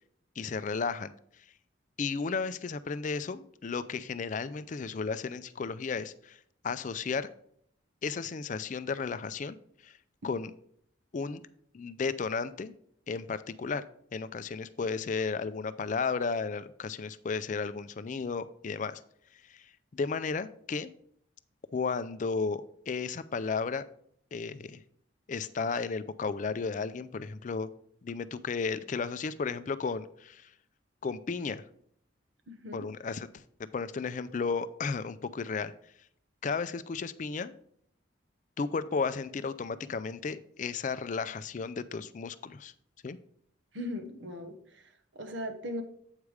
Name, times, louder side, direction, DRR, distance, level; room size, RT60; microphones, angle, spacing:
voice 1, 0.4-1.1 2.0-6.4 6.6-7.3 8.0-9.6 9.8-9.9 10.2-10.5 11.1-11.4 11.7-12.7 13.1-13.8 14.1-19.0 19.5-20.9 21.7-23.8 24.3-24.8 25.3-27.7 28.0-30.5 31.0-31.6 32.7-33.4 33.7-35.7 36.4-37.5 38.6-42.7 43.0-43.2, left 5 dB, 40° left, 14 dB, 0.4 m, -34 dB
voice 2, 32.5-32.8 43.7-44.8 45.1-45.8, left 1 dB, 75° right, 5 dB, 1.2 m, -38 dB
8.2 x 4.9 x 4.8 m, 0.66 s
head